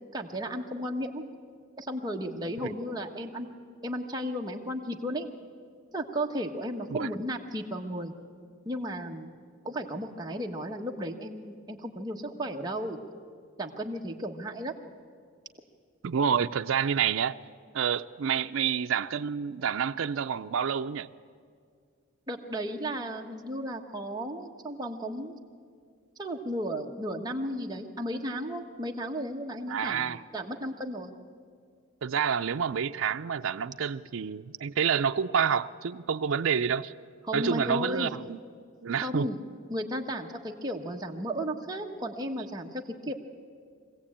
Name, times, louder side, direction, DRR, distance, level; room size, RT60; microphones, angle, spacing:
voice 1, 0.1-1.3 1.8-3.5 3.8-5.3 5.9-8.1 8.6-9.3 9.6-13.0 13.6-14.8 22.3-25.4 26.2-31.1 37.2-38.2 39.0-39.4 39.7-43.1, equal, 20° right, 1 dB, 1.2 m, -34 dB
voice 2, 16.0-17.4 17.7-21.1 29.7-30.2 32.0-36.9 37.3-38.4 38.8-39.3, right 7 dB, 80° right, 9 dB, 0.5 m, -28 dB
23.5 x 16.0 x 8.7 m, 2.1 s
head